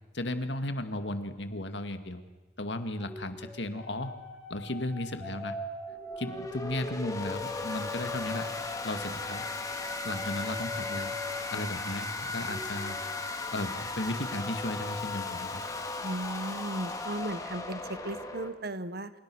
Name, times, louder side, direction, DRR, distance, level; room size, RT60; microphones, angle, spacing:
voice 1, 0.1-2.2 2.6-4.2 4.5-5.6 6.2-8.5 8.8-9.6 10.0-11.1 11.5-15.6, left 1 dB, 65° left, 8 dB, 2.2 m, -35 dB
sound 1, 3.0-12.1 12.4-16.0, left 2 dB, ahead, 4.9 m, -43 dB
sound 2, 5.9-18.5, left 3 dB, 20° left, 2.4 m, -37 dB
voice 2, 16.0-19.1, right 1 dB, 55° right, 13 dB, 1.3 m, -36 dB
29.0 x 28.0 x 6.4 m, 1.2 s
head